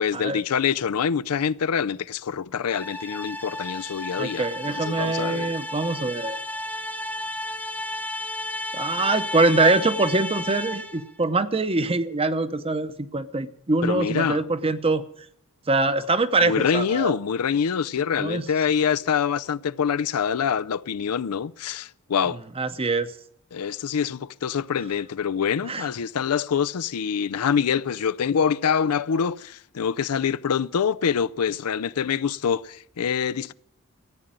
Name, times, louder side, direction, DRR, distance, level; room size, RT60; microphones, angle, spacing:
voice 1, 0.0-5.5 13.8-14.4 16.4-22.4 23.5-33.5, left 7 dB, 85° left, 0.5 m, -25 dB
sound 1, 2.7-11.1, left 1 dB, 5° left, 0.8 m, -33 dB
voice 2, 4.2-6.4 8.7-15.0 15.7-17.2 18.2-18.5 22.6-23.1 25.7-25.8, right 3 dB, 25° right, 0.7 m, -24 dB
14.0 x 9.0 x 8.8 m
head